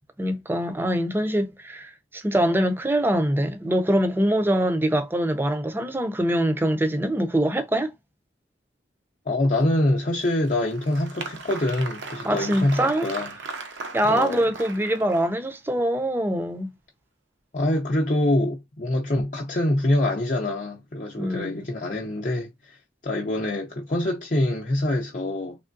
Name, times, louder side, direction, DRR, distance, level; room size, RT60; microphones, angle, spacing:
voice 1, 0.2-7.9 12.2-13.1 13.9-16.7 21.2-21.6, right 1 dB, 10° right, 0.5 m, -24 dB
voice 2, 9.3-13.3 14.1-14.5 17.5-22.8 23.0-25.6, left 1 dB, 45° left, 0.6 m, -25 dB
Applause, 10.2-15.5, right 4 dB, 80° right, 0.7 m, -38 dB
3.6 x 3.2 x 2.6 m
head